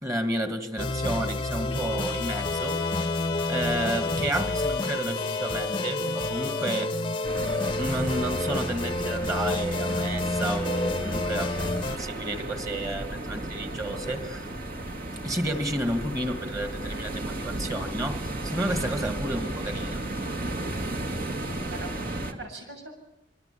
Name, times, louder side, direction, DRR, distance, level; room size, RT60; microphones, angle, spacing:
voice 1, 0.0-2.8 3.5-7.0 7.8-14.5 15.2-20.0, right 1 dB, 20° right, 2.0 m, -31 dB
sound 1, 0.8-12.0, left 2 dB, 25° left, 0.8 m, -29 dB
Bowed string instrument, 1.7-7.0, left 11 dB, 75° left, 0.9 m, -38 dB
sound 2, 7.2-22.3, right 1 dB, 55° right, 2.5 m, -34 dB
voice 2, 21.7-22.9, right 3 dB, 90° right, 7.2 m, -42 dB
26.0 x 24.0 x 7.1 m
head